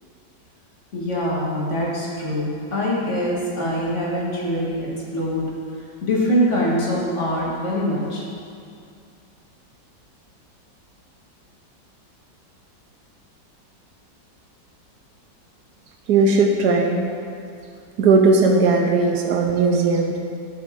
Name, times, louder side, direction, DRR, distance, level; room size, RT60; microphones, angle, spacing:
voice 1, 0.9-4.8 5.1-5.5 6.0-8.3, equal, 40° left, -5 dB, 2.0 m, -23 dB
voice 2, 16.1-17.0 18.0-20.2, right 3 dB, 70° right, 2 dB, 1.2 m, -17 dB
12.5 x 7.2 x 3.6 m, 2.4 s
omnidirectional pair, 2.0 m